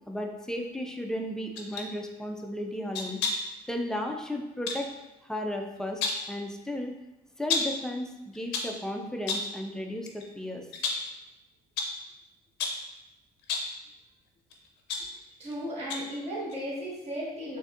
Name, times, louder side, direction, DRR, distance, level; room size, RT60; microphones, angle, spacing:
voice 1, 0.1-3.2 3.7-4.9 5.2-6.0 6.3-6.9 7.4-10.7, left 1 dB, 5° left, 2 dB, 0.3 m, -34 dB
sound 1, 1.6-1.9 2.9-3.5 4.7-4.9 5.8-6.3 7.5-7.8 8.3-8.8 9.3-9.6 10.1-10.2 10.7-11.1 11.8-12.0 12.6-12.9 13.4-13.8 14.5-15.5 15.9-16.2 16.5-16.6, left 4 dB, 85° left, 0.5 m, -32 dB
voice 2, 15.4-17.6, equal, 40° right, -6 dB, 1.5 m, -35 dB
3.9 x 2.6 x 2.4 m, 0.96 s
cardioid pair, 110°, 17 cm